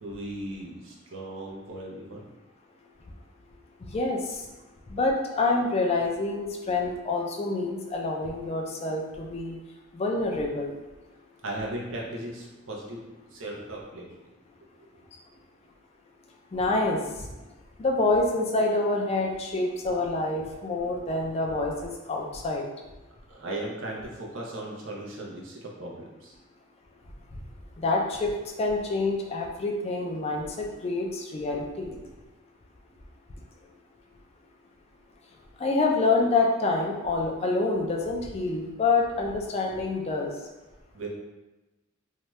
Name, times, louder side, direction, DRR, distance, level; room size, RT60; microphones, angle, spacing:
voice 1, 0.0-2.2 11.4-14.1 23.3-26.3 40.9-41.1, right 1 dB, 70° right, -2 dB, 0.7 m, -37 dB
voice 2, 4.9-9.6 9.9-10.7 16.5-17.0 17.8-22.6 27.8-28.3 28.6-32.0 35.6-40.3, left 3 dB, 30° left, 0 dB, 0.4 m, -27 dB
2.7 x 2.2 x 3.1 m, 1.1 s
head